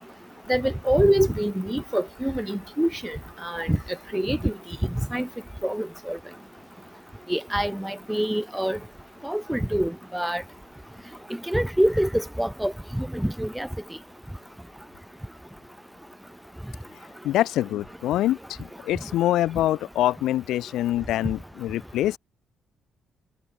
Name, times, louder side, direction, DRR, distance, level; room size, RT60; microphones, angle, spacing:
voice 1, 0.5-3.8 4.1-4.5 5.1-5.3 5.6-6.2 7.3-8.8 9.2-10.4 11.5-13.7, equal, 5° right, 2.3 m, -25 dB
voice 2, 17.2-22.2, left 14 dB, 85° left, 1.2 m, -25 dB
cardioid pair, 90°, 0 cm